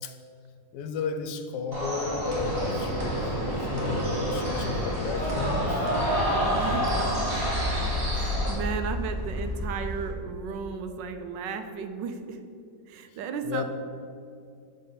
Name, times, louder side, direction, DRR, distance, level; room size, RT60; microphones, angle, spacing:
voice 1, 0.7-5.9 13.4-13.6, left 5 dB, 75° left, 7 dB, 1.2 m, -34 dB
sound 1, 1.7-8.5, equal, 35° right, 1.7 m, -28 dB
sound 2, 2.0-10.1, left 1 dB, 50° left, 0.6 m, -33 dB
voice 2, 6.3-7.3 8.1-12.4 12.9-13.6, right 6 dB, 85° right, 7 dB, 1.3 m, -35 dB
7.7 x 3.7 x 5.6 m, 2.4 s
omnidirectional pair, 1.9 m